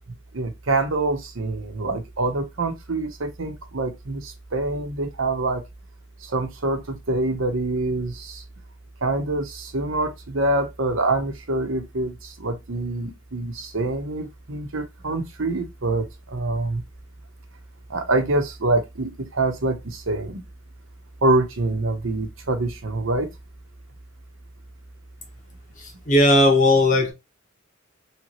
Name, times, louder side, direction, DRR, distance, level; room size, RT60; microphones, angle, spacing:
voice 1, 0.3-5.6 6.3-8.4 9.0-12.1 12.4-16.8 17.9-20.4 21.2-23.3, right 2 dB, 75° right, 0.9 m, -25 dB
voice 2, 25.8-27.1, left 1 dB, 40° left, 1.1 m, -17 dB
3.3 x 3.1 x 2.9 m
head